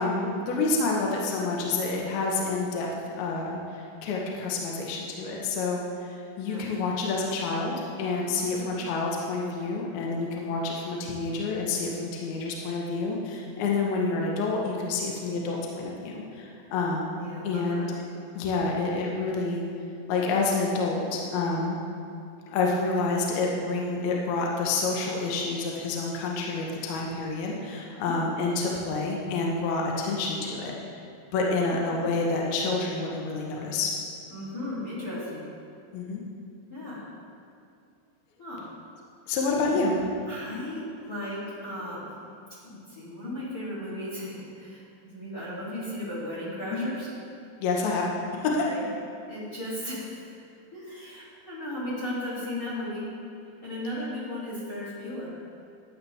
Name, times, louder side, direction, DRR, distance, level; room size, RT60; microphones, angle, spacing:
voice 1, 0.0-2.9 3.2-17.9 18.4-19.7 20.1-21.8 22.5-30.7 31.3-33.9 35.9-36.2 39.3-40.0 46.7-46.9 47.6-48.0 48.4-48.7, left 3 dB, 70° left, -2 dB, 2.8 m, -28 dB
voice 2, 8.1-8.7 17.2-17.9 27.8-28.2 31.3-32.1 34.3-35.4 36.7-37.0 38.4-38.7 40.3-42.1 42.6-44.8 45.1-47.1 48.7-48.8 49.3-50.3 50.7-53.1 53.6-55.3, left 1 dB, 25° left, -7 dB, 2.6 m, -36 dB
14.0 x 10.5 x 3.5 m, 2.5 s
omnidirectional pair, 5.1 m